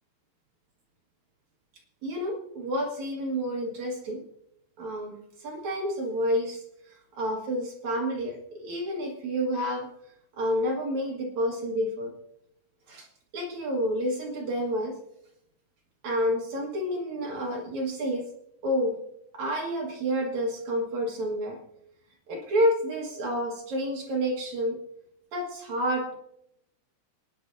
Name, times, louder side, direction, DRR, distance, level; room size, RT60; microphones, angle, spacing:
voice 1, 2.0-4.2 4.8-6.6 7.2-9.9 10.4-12.1 12.9-13.1 13.3-14.9 16.0-18.3 18.6-18.9 19.3-21.6 22.3-24.8 25.3-26.1, equal, 55° right, -1 dB, 2.1 m, -29 dB
26.5 x 10.0 x 2.7 m, 0.78 s
omnidirectional pair, 5.5 m